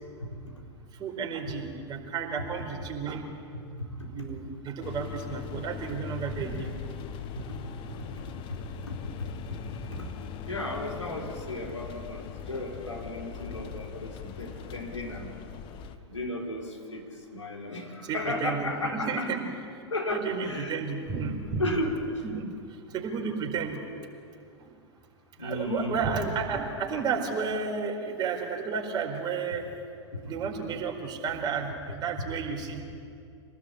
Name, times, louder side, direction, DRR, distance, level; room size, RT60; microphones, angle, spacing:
voice 1, 1.0-3.3 4.1-6.7 18.1-19.4 20.1-21.6 22.2-22.5 22.9-23.8 24.6-24.7 25.4-29.6 30.3-32.8, right 5 dB, 30° right, 2 dB, 4.6 m, -32 dB
voice 2, 3.7-4.3 7.3-10.1 10.4-15.3 16.1-19.3 19.9-20.8 21.6-22.2 25.4-26.0 30.1-30.2, left 1 dB, 85° left, 0 dB, 4.5 m, -35 dB
sound 1, 4.8-16.0, left 8 dB, 35° left, 1.5 m, -40 dB
26.5 x 19.0 x 8.9 m, 2.4 s
figure-of-eight pair, 100°, 15 cm